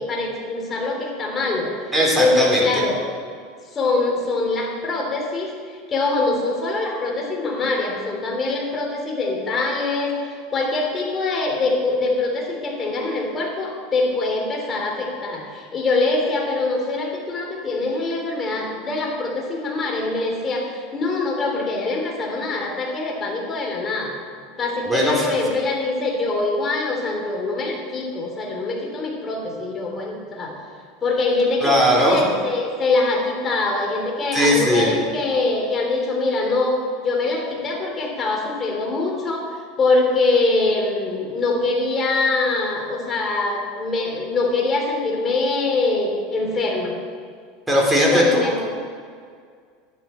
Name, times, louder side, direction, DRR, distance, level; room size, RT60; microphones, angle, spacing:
voice 1, 0.0-1.7 2.1-3.0 3.7-24.1 24.6-30.5 31.0-36.7 37.0-46.9 47.9-48.6, left 3 dB, 30° left, 0 dB, 3.5 m, -23 dB
voice 2, 1.9-2.7 24.9-25.3 31.6-32.2 34.3-34.9 47.7-48.6, equal, 5° right, -3 dB, 3.6 m, -18 dB
11.5 x 11.0 x 4.5 m, 2.1 s
supercardioid pair, 115°, 0 cm